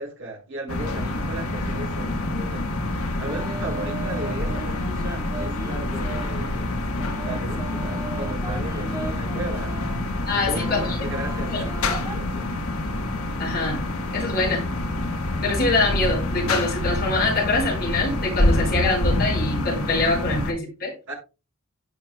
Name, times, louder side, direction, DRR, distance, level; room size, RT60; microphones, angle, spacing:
voice 1, 0.0-2.7 3.2-9.8 10.4-12.5 21.1-21.2, right 2 dB, 70° right, 5.6 m, -36 dB
sound 1, 0.7-20.5, left 1 dB, 70° left, 1.3 m, -27 dB
sound 2, 3.3-6.3 7.0-10.0 10.5-12.2, right 2 dB, 15° right, 1.3 m, -37 dB
voice 2, 10.3-10.9 11.5-11.6 13.4-13.8 14.1-14.6 15.4-20.9, left 2 dB, 45° left, 5.0 m, -24 dB
17.0 x 5.7 x 2.2 m
head